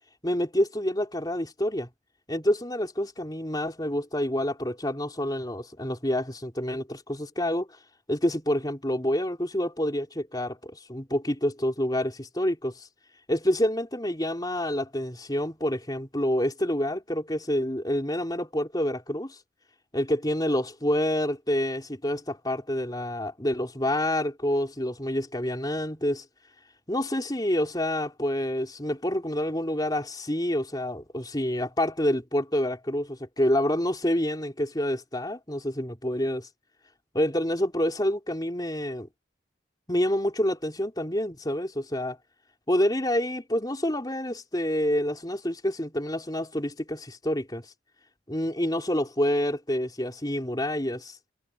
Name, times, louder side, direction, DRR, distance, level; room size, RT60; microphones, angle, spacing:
voice 1, 0.2-1.9 2.3-7.7 8.1-12.9 13.3-19.4 19.9-26.2 26.9-36.5 37.1-39.1 39.9-42.2 42.7-47.6 48.3-51.2, left 1 dB, 20° left, 4.1 m, -28 dB
head